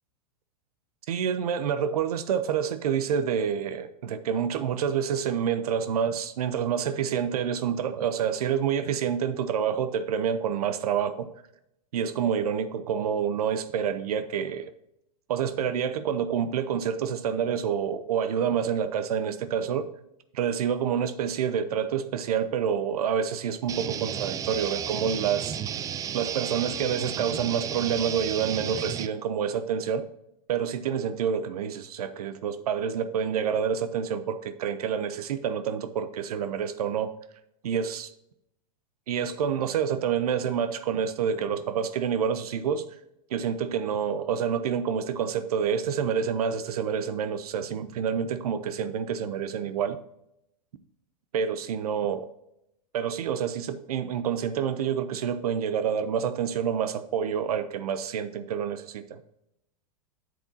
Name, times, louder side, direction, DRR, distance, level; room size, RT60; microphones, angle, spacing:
voice 1, 1.1-11.3 11.9-14.7 15.3-19.9 20.3-25.6 26.1-30.1 30.5-37.1 37.6-38.1 39.1-42.9 43.3-50.0 51.3-52.3 52.9-59.2, right 7 dB, 85° right, 11 dB, 0.7 m, -28 dB
sound 1, 23.7-29.1, right 9 dB, 20° right, 0.3 m, -33 dB
8.9 x 7.6 x 2.7 m, 0.80 s
hypercardioid pair, 130°, 19 cm